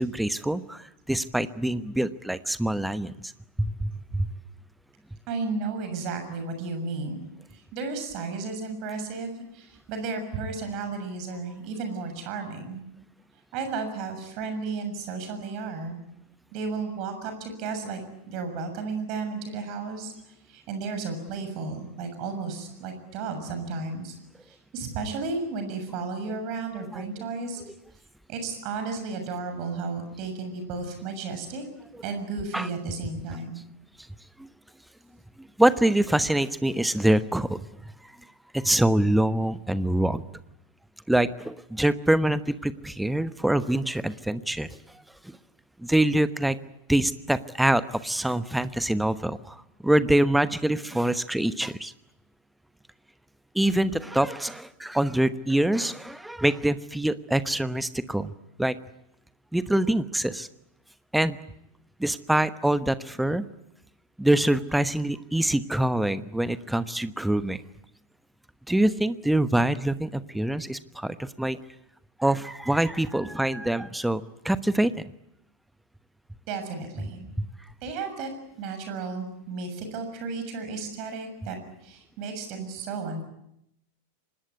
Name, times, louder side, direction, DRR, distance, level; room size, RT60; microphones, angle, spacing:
voice 1, 0.0-3.3 3.6-4.3 26.9-27.0 32.5-32.7 34.4-34.5 35.4-37.7 38.0-38.1 38.5-40.2 41.1-44.7 45.2-45.4 45.8-46.6 46.9-51.9 53.5-58.3 58.6-58.8 59.5-60.5 61.1-61.4 62.0-63.5 64.2-67.6 68.7-71.6 72.2-75.1 77.0-77.1 77.4-77.5, right 1 dB, 5° right, 14 dB, 1.1 m, -25 dB
voice 2, 5.3-7.2 7.5-12.8 13.5-16.0 16.5-20.1 20.5-24.2 24.5-27.6 28.3-31.6 32.0-33.6 76.5-77.3 77.8-78.3 78.6-83.2, right 4 dB, 40° right, 7 dB, 6.9 m, -33 dB
25.5 x 20.0 x 9.6 m, 0.81 s
figure-of-eight pair, 90°, 0 cm